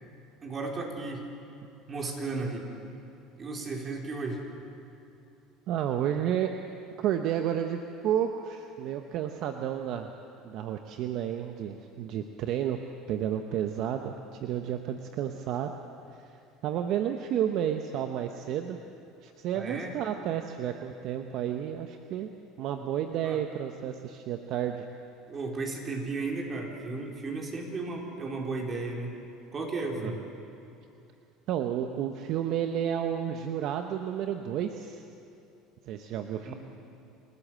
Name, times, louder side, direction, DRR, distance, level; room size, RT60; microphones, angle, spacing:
voice 1, 0.4-1.2 1.9-2.7 3.4-4.4 19.5-19.9 22.8-22.9 23.2-23.4 25.3-29.2 29.5-30.2 36.4-36.6, right 3 dB, 35° right, 0 dB, 4.2 m, -34 dB
voice 2, 5.7-6.5 7.0-10.1 10.4-12.8 13.1-14.2 14.4-15.7 16.6-18.8 19.2-22.3 22.6-24.8 30.0-30.2 31.5-35.0 35.9-36.5, right 10 dB, 60° right, 6 dB, 1.0 m, -31 dB
28.0 x 13.5 x 7.6 m, 2.7 s
supercardioid pair, 95°, 0 cm